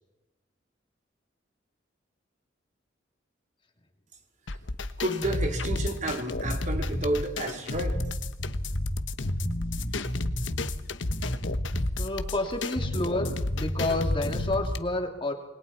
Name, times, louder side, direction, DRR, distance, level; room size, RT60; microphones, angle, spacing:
sound 1, 4.5-14.8, left 2 dB, 85° left, 1.1 m, -33 dB
voice 1, 5.0-8.0, right 1 dB, 40° right, 2.7 m, -31 dB
sound 2, 5.2-5.9 6.4-7.1 7.9-8.9 9.3-10.7 11.1-12.0 12.8-14.8, equal, 60° left, 3.6 m, -32 dB
voice 2, 12.0-15.3, left 2 dB, 30° left, 2.8 m, -30 dB
28.5 x 21.5 x 4.3 m
head